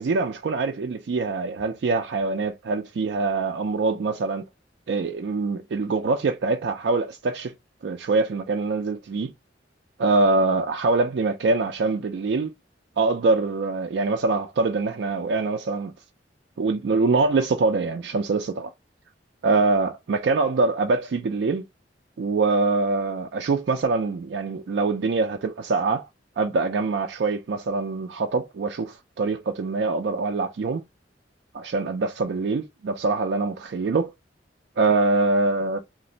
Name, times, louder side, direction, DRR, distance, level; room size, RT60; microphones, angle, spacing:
voice 1, 0.0-4.4 4.9-7.5 7.8-9.3 10.0-12.5 13.0-15.9 16.6-18.7 19.4-21.6 22.2-26.1 26.4-30.8 31.5-34.1 34.8-35.8, right 3 dB, 70° right, 0.4 m, -24 dB
2.5 x 2.0 x 3.7 m
head